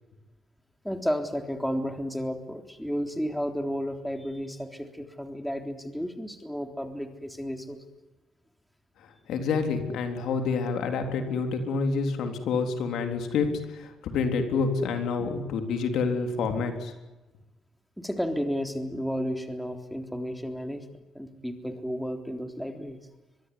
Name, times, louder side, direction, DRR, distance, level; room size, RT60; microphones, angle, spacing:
voice 1, 0.8-7.8 18.0-23.0, equal, ahead, 5 dB, 3.6 m, -32 dB
voice 2, 9.3-16.9, left 4 dB, 80° left, 5 dB, 3.7 m, -28 dB
23.5 x 22.5 x 9.9 m, 1.1 s
cardioid pair, 90°, 0 cm